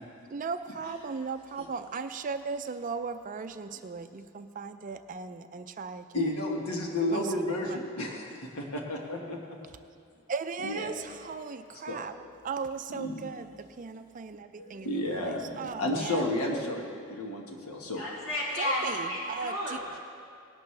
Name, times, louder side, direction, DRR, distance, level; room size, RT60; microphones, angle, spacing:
voice 1, 0.3-6.2 7.1-7.8 10.3-12.2 12.4-16.3 18.6-19.8, right 5 dB, 35° right, 0.4 m, -37 dB
voice 2, 6.1-9.6 10.6-10.9 11.9-12.0 12.9-13.1 14.5-18.0, left 1 dB, 80° left, 1.4 m, -32 dB
voice 3, 17.9-20.0, left 1 dB, 60° left, 2.6 m, -32 dB
18.0 x 11.5 x 3.3 m
head